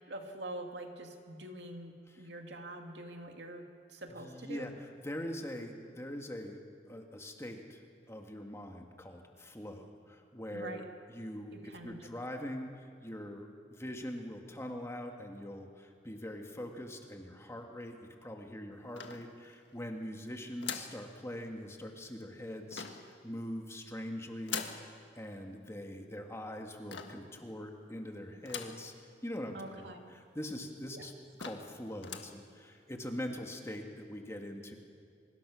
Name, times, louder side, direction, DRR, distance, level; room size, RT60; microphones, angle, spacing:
voice 1, 0.1-4.7 10.5-10.8 11.5-12.0 29.5-30.1 30.9-31.0, right 1 dB, 75° right, 3 dB, 2.4 m, -45 dB
voice 2, 4.1-6.6 6.9-7.8 8.1-28.9 29.2-31.1 31.4-34.8, equal, 15° left, 3 dB, 2.0 m, -43 dB
sound 1, 19.0-19.7 20.6-21.0 22.7-23.2 24.5-24.9 26.9-27.3 28.5-28.9 29.4-29.5 29.7-29.8 30.5-30.6 31.0-31.1 31.4-31.7 32.0-32.4, left 7 dB, 80° left, 1.7 m, -41 dB
24.5 x 21.0 x 6.4 m, 2.4 s
head